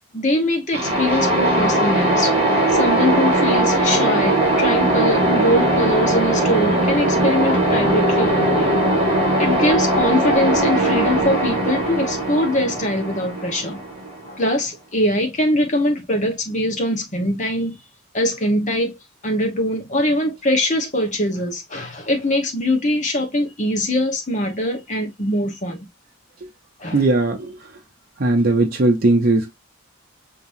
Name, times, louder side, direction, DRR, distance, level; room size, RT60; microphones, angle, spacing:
voice 1, 0.1-2.3 2.7-8.8 9.4-13.8 14.2-17.8 18.1-19.0 19.2-25.9 26.8-27.1, left 1 dB, 35° left, 1.2 m, -22 dB
sound 1, 0.7-14.4, right 1 dB, 30° right, 1.7 m, -19 dB
voice 2, 26.9-27.6 28.2-29.5, right 2 dB, 45° right, 0.6 m, -18 dB
5.3 x 2.9 x 2.6 m
head